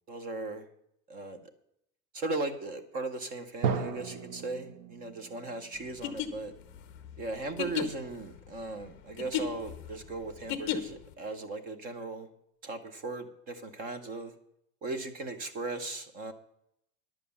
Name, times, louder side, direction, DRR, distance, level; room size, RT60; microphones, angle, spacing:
voice 1, 0.1-0.6 1.1-1.4 2.1-6.5 7.2-12.3 12.6-14.3 14.8-16.3, right 2 dB, 25° right, 9 dB, 0.8 m, -37 dB
Drum, 3.6-7.3, right 6 dB, 50° right, 1.0 m, -36 dB
sound 1, 5.9-11.1, left 10 dB, 30° left, 0.8 m, -35 dB
10.5 x 7.3 x 7.0 m, 0.74 s
supercardioid pair, 180°, 38 cm